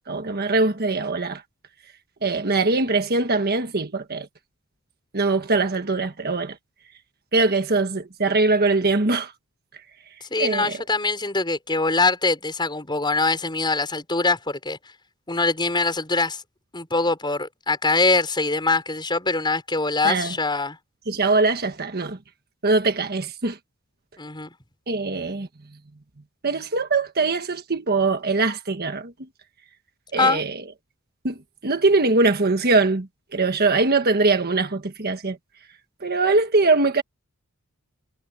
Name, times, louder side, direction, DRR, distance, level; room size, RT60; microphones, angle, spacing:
voice 1, 0.0-1.4 2.2-4.3 5.1-6.6 7.3-9.3 10.4-10.8 20.0-20.3 21.1-22.2 22.6-23.6 24.9-25.5 26.4-29.1 30.1-30.6 31.2-31.4 31.6-35.4 36.0-37.0, right 3 dB, 45° right, 1.4 m, -22 dB
voice 2, 10.2-14.8 15.3-16.4 16.7-20.8 24.2-24.5 30.2-30.4, left 3 dB, 20° left, 5.4 m, -23 dB
head